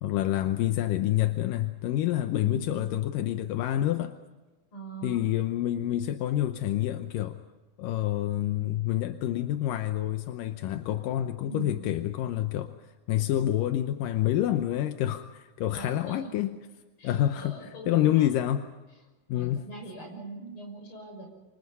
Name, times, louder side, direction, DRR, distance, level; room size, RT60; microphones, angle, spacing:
voice 1, 0.0-4.2 5.0-7.4 7.8-16.5 17.0-18.6 19.3-19.7, left 13 dB, 85° left, 8 dB, 2.5 m, -28 dB
voice 2, 2.4-2.8 4.7-5.2 11.4-11.9 15.7-16.3 17.0-18.3 19.3-21.3, right 3 dB, 40° left, 2 dB, 7.0 m, -41 dB
28.0 x 25.0 x 5.5 m, 1.2 s
omnidirectional pair, 3.8 m